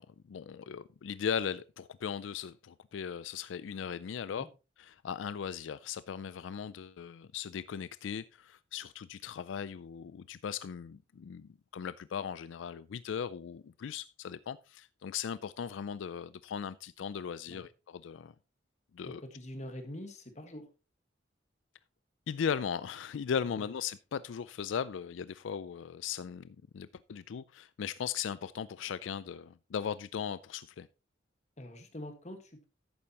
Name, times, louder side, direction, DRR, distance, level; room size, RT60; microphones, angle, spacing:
voice 1, 0.0-4.5 4.8-18.3 18.9-19.2 22.3-30.9, left 7 dB, 85° left, 0.4 m, -38 dB
voice 2, 19.0-20.7 23.6-23.7 31.6-32.6, left 1 dB, 35° left, 1.6 m, -45 dB
11.5 x 8.6 x 2.9 m
head